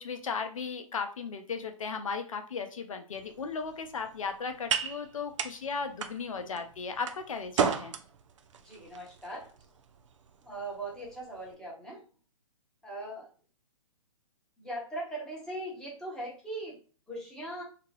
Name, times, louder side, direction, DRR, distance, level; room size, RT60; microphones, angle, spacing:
voice 1, 0.0-8.0, left 5 dB, 70° left, 6 dB, 0.5 m, -36 dB
sound 1, 3.1-11.5, right 7 dB, 60° right, 0.4 m, -37 dB
voice 2, 8.6-9.5 10.4-12.0 12.8-13.3 14.6-16.8 17.1-17.6, right 1 dB, 5° left, -5 dB, 1.0 m, -40 dB
2.8 x 2.3 x 3.1 m, 0.39 s
figure-of-eight pair, 125°, 18 cm